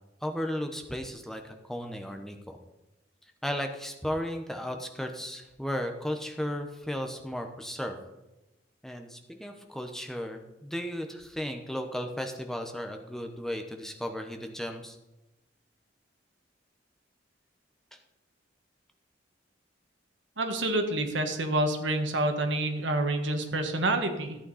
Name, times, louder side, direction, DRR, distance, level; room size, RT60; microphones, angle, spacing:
voice 1, 0.2-2.6 3.4-8.0 8.8-15.0, equal, ahead, 4 dB, 0.9 m, -35 dB
voice 2, 20.4-24.4, right 2 dB, 80° right, 5 dB, 1.5 m, -28 dB
14.0 x 8.8 x 4.1 m, 0.98 s
head